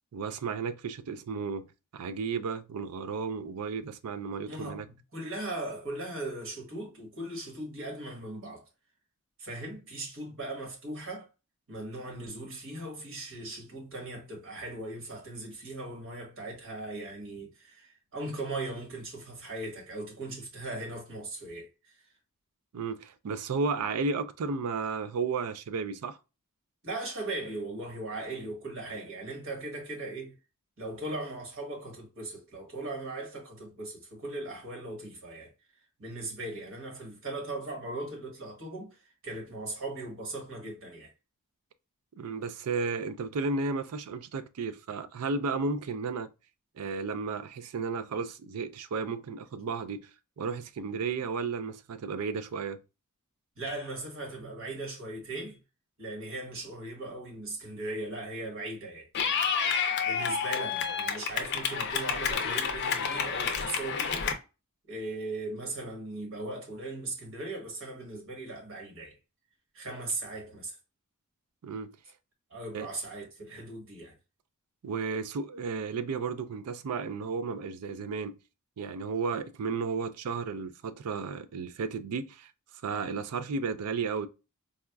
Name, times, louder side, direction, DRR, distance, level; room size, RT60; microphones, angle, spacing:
voice 1, 0.1-1.7 1.9-4.9 22.7-26.2 42.2-46.3 46.8-50.1 50.4-52.8 71.6-71.9 72.7-72.9 74.8-78.4 78.8-82.5 82.8-84.3, right 4 dB, 90° right, 0.4 m, -33 dB
voice 2, 4.4-8.6 9.4-11.3 11.7-22.0 26.8-30.3 30.8-35.5 36.0-39.0 39.2-41.1 53.6-55.6 56.0-59.1 60.0-64.3 64.9-69.2 69.7-70.8 72.5-74.1, right 2 dB, 60° right, 1.4 m, -38 dB
Clapping / Cheering, 59.1-64.3, left 6 dB, 50° left, 0.5 m, -29 dB
4.1 x 2.3 x 2.2 m
head